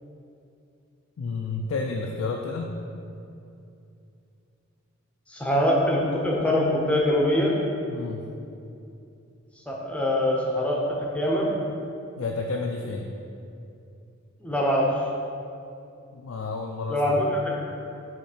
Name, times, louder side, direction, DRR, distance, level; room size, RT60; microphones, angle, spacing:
voice 1, 1.2-2.8 7.9-8.3 12.2-13.1 16.1-17.2, left 3 dB, 75° left, 1 dB, 0.4 m, -31 dB
voice 2, 5.3-7.5 9.7-11.5 14.4-15.0 16.9-17.5, left 1 dB, 5° left, -3 dB, 0.7 m, -23 dB
6.9 x 3.2 x 4.9 m, 2.6 s
head